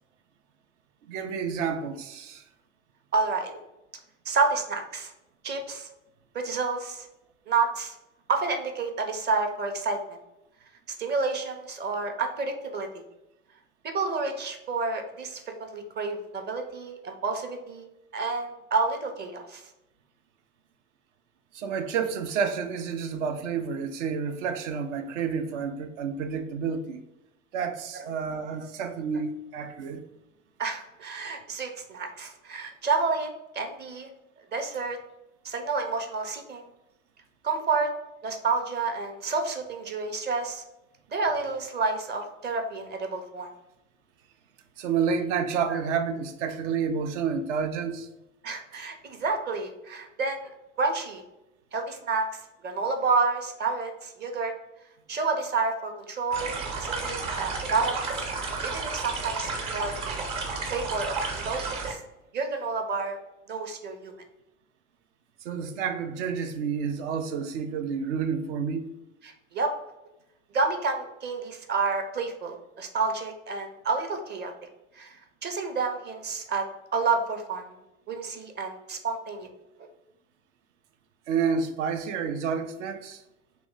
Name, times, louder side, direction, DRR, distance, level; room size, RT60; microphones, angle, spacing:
voice 1, 1.1-2.4 21.5-27.0 27.5-30.1 44.8-48.1 65.4-68.9 81.3-83.2, right 6 dB, 60° right, 0.6 m, -29 dB
voice 2, 3.1-3.6 4.2-5.1 5.4-5.9 6.3-7.1 7.5-7.9 8.3-10.2 11.0-12.9 13.9-17.9 18.1-19.6 28.5-28.7 30.6-34.1 34.5-35.0 35.4-36.6 37.4-37.9 38.2-40.6 41.1-43.5 48.4-50.5 50.8-51.2 51.7-54.5 55.1-58.0 58.6-60.2 60.7-62.0 62.3-63.2 63.5-64.1 69.2-69.7 70.5-74.5 75.0-76.6 76.9-77.7 78.1-79.5 79.8-79.9, right 4 dB, 25° right, 0.7 m, -29 dB
sound 1, 56.3-61.9, right 4 dB, 45° right, 1.1 m, -32 dB
3.1 x 3.0 x 3.6 m
figure-of-eight pair, 80°, 39 cm